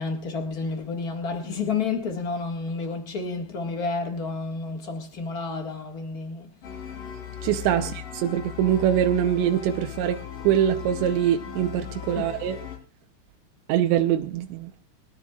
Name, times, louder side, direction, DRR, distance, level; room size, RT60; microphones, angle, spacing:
voice 1, 0.0-6.5 7.7-7.9 12.1-12.3, left 4 dB, 70° left, 0.8 m, -30 dB
sound 1, 6.6-12.8, left 10 dB, 55° left, 4.9 m, -37 dB
voice 2, 7.4-12.6 13.7-14.9, right 10 dB, 90° right, 3.1 m, -24 dB
25.5 x 13.5 x 2.4 m
omnidirectional pair, 4.9 m